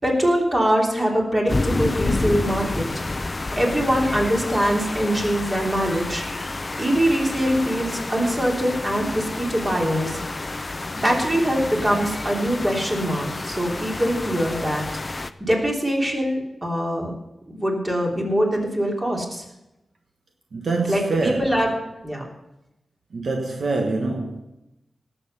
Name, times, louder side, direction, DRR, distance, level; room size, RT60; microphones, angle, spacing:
voice 1, 0.0-2.8 3.5-6.2 6.8-10.2 11.0-14.8 15.4-17.1 17.5-19.4 20.9-21.7 22.0-22.2, equal, 20° right, 3.3 m, -23 dB
sound 1, 1.5-15.3, left 2 dB, 30° left, 0.6 m, -29 dB
voice 2, 20.5-21.5 23.1-24.4, right 3 dB, 65° right, 1.3 m, -25 dB
18.0 x 8.0 x 5.5 m
wide cardioid pair, 110°, 0 cm